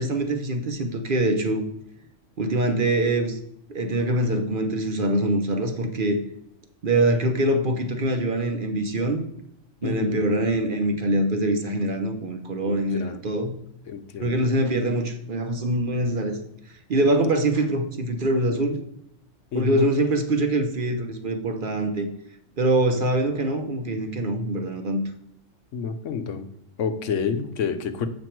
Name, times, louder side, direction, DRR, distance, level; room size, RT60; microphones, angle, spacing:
voice 1, 0.0-1.6 2.4-3.4 3.7-6.2 6.8-9.2 9.8-13.6 14.2-16.4 16.9-18.8 19.5-22.1 22.6-25.0, right 1 dB, 50° right, 6 dB, 0.9 m, -24 dB
voice 2, 9.8-10.2 12.7-13.2 13.9-14.6 19.5-19.9 25.7-26.5 26.8-28.1, left 6 dB, 85° left, 9 dB, 1.1 m, -29 dB
7.8 x 5.2 x 4.5 m, 0.76 s
omnidirectional pair, 1.3 m